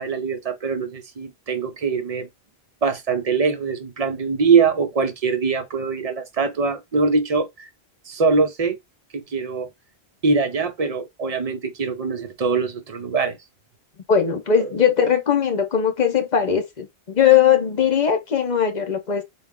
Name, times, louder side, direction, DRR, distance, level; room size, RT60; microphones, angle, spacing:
voice 1, 0.0-2.3 2.8-7.7 8.1-8.8 9.1-9.7 10.2-13.4 14.6-14.7, right 4 dB, 45° right, 0.6 m, -22 dB
voice 2, 14.1-19.2, left 8 dB, 45° left, 0.8 m, -19 dB
3.5 x 2.3 x 3.6 m
omnidirectional pair, 1.1 m